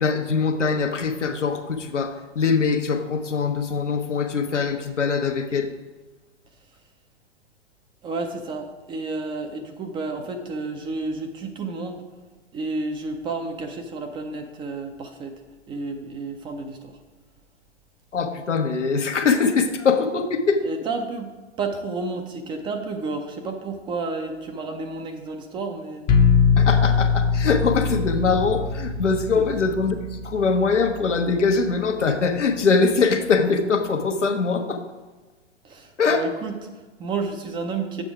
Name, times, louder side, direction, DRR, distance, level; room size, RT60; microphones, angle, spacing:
voice 1, 0.0-5.7 18.1-20.6 26.6-34.8 36.0-36.2, left 5 dB, 90° left, 5 dB, 1.1 m, -22 dB
voice 2, 8.0-12.0 12.5-15.4 15.7-17.0 20.6-21.3 21.6-26.1 29.4-29.5 35.6-38.0, right 3 dB, 15° right, 5 dB, 0.5 m, -31 dB
sound 1, 26.1-31.9, left 5 dB, 20° left, 0.7 m, -23 dB
7.3 x 6.8 x 4.8 m, 1.2 s
hypercardioid pair, 120°, 35 cm